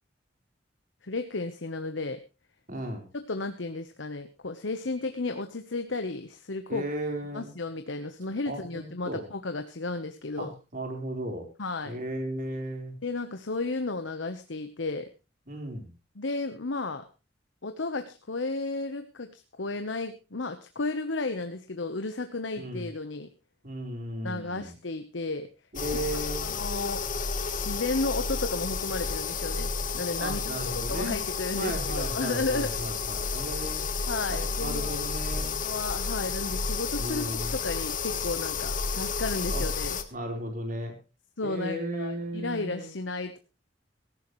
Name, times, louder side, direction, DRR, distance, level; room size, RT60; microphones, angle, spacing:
voice 1, 1.0-2.2 3.1-6.8 7.3-10.5 11.6-12.0 13.0-15.1 16.1-17.0 17.6-23.3 24.2-25.5 26.1-30.6 30.9-32.7 34.1-35.0 35.4-37.2 37.5-40.0 41.4-43.4, left 3 dB, 85° left, 8 dB, 1.1 m, -33 dB
voice 2, 2.7-3.0 6.7-7.5 8.5-9.2 10.4-11.5 11.8-12.9 15.5-15.9 22.6-22.8 23.6-24.7 25.7-26.5 30.2-31.2 31.6-33.8 34.3-35.6 37.0-37.5 39.5-39.6 40.1-40.9 41.4-42.9, right 1 dB, 50° right, 3 dB, 4.3 m, -35 dB
sound 1, 25.8-40.0, left 5 dB, 45° left, 1.3 m, -31 dB
17.0 x 15.0 x 3.2 m, 0.31 s
head